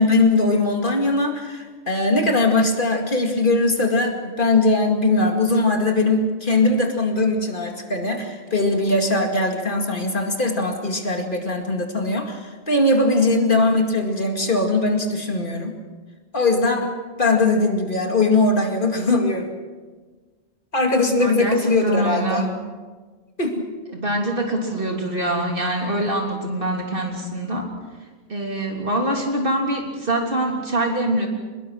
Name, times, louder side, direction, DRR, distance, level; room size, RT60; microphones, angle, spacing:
voice 1, 0.0-15.8 16.3-19.5 20.7-22.5 23.4-23.6, left 2 dB, 50° left, 3 dB, 2.5 m, -20 dB
voice 2, 21.2-22.4 23.9-27.7 28.3-31.3, right 1 dB, 50° right, 1 dB, 3.5 m, -24 dB
24.0 x 21.0 x 6.4 m, 1.4 s
omnidirectional pair, 1.1 m